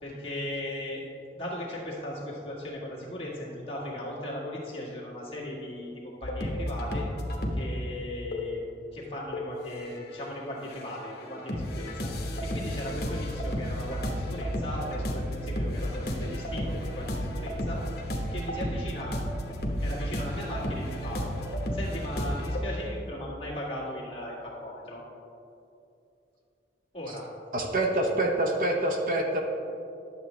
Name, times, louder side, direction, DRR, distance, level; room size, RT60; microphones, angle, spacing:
voice 1, 0.0-1.1 1.3-7.1 7.5-8.6 8.9-12.1 12.4-17.8 18.3-19.2 19.8-21.2 21.7-25.0 26.9-27.3, left 1 dB, 30° left, -5 dB, 1.8 m, -37 dB
sound 1, 6.2-7.6 8.3-8.6 9.3-10.3 10.6-22.6, equal, 55° left, 1.0 m, -32 dB
voice 2, 27.5-29.4, right 1 dB, 50° right, 2 dB, 0.7 m, -26 dB
11.0 x 7.1 x 3.1 m, 2.7 s
head